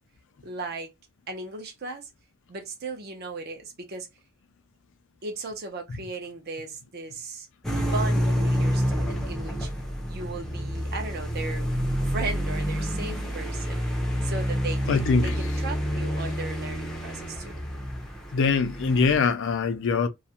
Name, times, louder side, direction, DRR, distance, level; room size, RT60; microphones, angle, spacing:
voice 1, 0.4-0.9 1.3-2.1 2.5-4.1 5.2-7.5 7.8-9.7 10.1-11.7 12.0-13.8 14.2-17.7, right 3 dB, 45° right, 0.6 m, -36 dB
sound 1, 7.6-19.2, equal, ahead, 0.5 m, -28 dB
voice 2, 14.9-15.5 18.3-20.1, left 4 dB, 60° left, 0.4 m, -23 dB
2.4 x 2.1 x 2.7 m
head